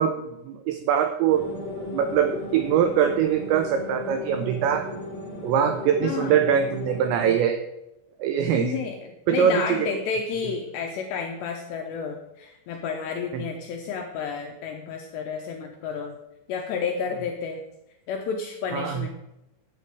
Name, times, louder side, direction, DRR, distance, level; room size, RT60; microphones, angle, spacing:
voice 1, 0.0-1.5 1.9-4.9 5.4-7.6 8.2-8.7 9.3-9.9 13.3-13.4 18.7-19.0, right 8 dB, 85° right, 7 dB, 2.5 m, -23 dB
sound 1, 1.3-7.3, left 2 dB, 25° left, 1.6 m, -36 dB
voice 2, 6.0-6.4 8.6-16.1 16.5-17.6 18.1-19.1, left 5 dB, 85° left, 2 dB, 2.5 m, -31 dB
11.5 x 8.2 x 4.7 m, 0.92 s
omnidirectional pair, 5.9 m